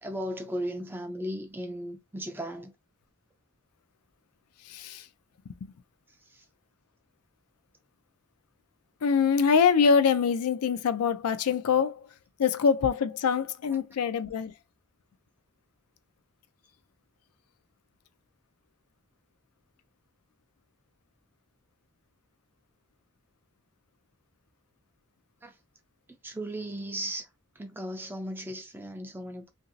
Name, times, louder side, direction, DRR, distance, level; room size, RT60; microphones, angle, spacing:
voice 1, 0.0-2.7 6.1-6.5 25.4-25.6 26.1-27.3 27.6-29.5, equal, 10° right, 0.4 m, -36 dB
voice 2, 4.6-5.1 5.5-5.7 9.0-12.1 12.4-14.5, left 6 dB, 85° left, 0.4 m, -24 dB
2.9 x 2.6 x 2.6 m
head